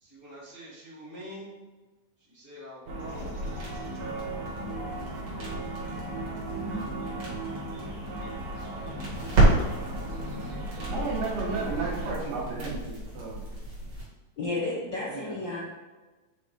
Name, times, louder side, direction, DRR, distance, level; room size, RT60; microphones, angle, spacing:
voice 1, 0.0-1.5 2.2-3.4 8.5-9.3 9.7-10.6, equal, 30° left, -10 dB, 1.0 m, -46 dB
sound 1, 2.9-12.1, right 1 dB, 70° right, 2.6 m, -36 dB
sound 2, 3.0-14.0, right 2 dB, 50° right, 2.9 m, -31 dB
voice 2, 10.7-13.5 15.1-15.3, right 4 dB, 85° right, -5 dB, 3.1 m, -33 dB
voice 3, 14.4-15.6, left 2 dB, 90° left, -6 dB, 1.0 m, -32 dB
7.3 x 3.2 x 4.2 m, 1.2 s
omnidirectional pair, 3.7 m